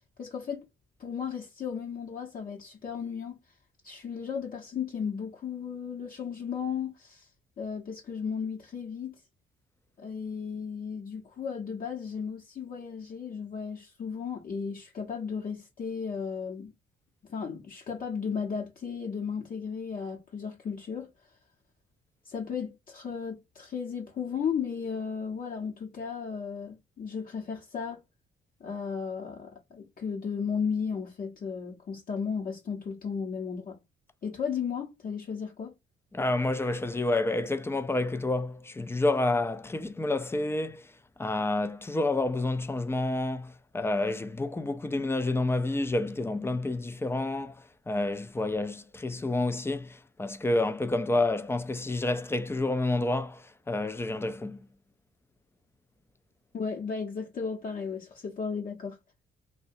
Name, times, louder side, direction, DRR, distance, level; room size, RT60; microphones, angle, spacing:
voice 1, 0.2-0.7 1.0-3.4 3.8-7.3 7.6-9.2 10.0-16.7 17.3-21.1 22.3-28.0 28.6-33.8 34.2-35.7 56.5-59.0, left 6 dB, 45° left, 0.8 m, -35 dB
voice 2, 36.1-40.9 41.2-54.6, left 2 dB, 10° left, 0.3 m, -29 dB
2.7 x 2.1 x 2.6 m
cardioid pair, 90°, 20 cm